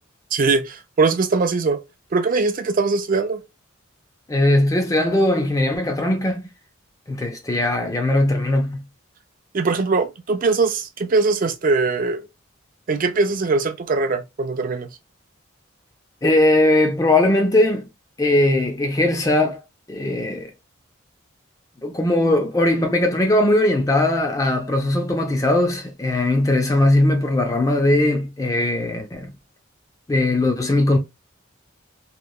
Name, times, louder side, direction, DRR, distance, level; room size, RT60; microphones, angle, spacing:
voice 1, 0.3-1.8 2.1-3.4 9.5-12.3 12.9-14.9, right 4 dB, 40° right, 0.4 m, -21 dB
voice 2, 4.3-6.5 7.1-8.8 16.2-17.9 18.2-19.6 19.9-20.5 21.8-29.3 30.1-31.0, left 1 dB, 15° left, 0.4 m, -19 dB
2.9 x 2.2 x 2.3 m
head